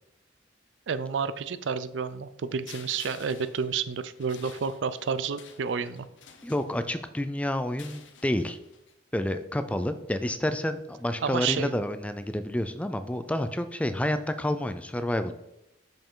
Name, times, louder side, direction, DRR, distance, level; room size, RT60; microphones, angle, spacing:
voice 1, 0.9-6.1 11.2-11.8, right 6 dB, 80° right, 14 dB, 0.4 m, -30 dB
sound 1, 2.7-7.1 7.6-8.9, left 7 dB, 90° left, 0.8 m, -51 dB
voice 2, 6.4-8.6 9.1-15.3, left 1 dB, 5° left, 10 dB, 0.3 m, -29 dB
7.0 x 5.2 x 3.8 m, 0.88 s
head